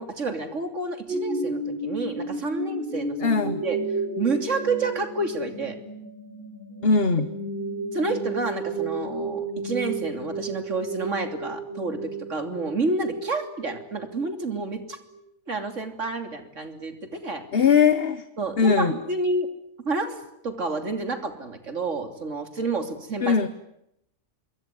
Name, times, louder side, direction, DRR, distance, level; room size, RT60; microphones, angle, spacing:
voice 1, 0.0-3.4 3.6-3.8 4.2-5.8 7.9-15.0 15.5-17.4 18.4-19.5 19.9-20.2 20.4-23.4, right 3 dB, 60° right, 6 dB, 3.4 m, -29 dB
sound 1, 1.1-14.6 15.1-15.2, right 2 dB, 45° right, 6.3 m, -32 dB
voice 2, 3.2-3.6 6.8-7.3 17.5-18.2 18.6-18.9 23.2-23.5, left 5 dB, 45° left, 11 dB, 1.3 m, -20 dB
26.0 x 22.5 x 9.7 m, 0.79 s
omnidirectional pair, 1.4 m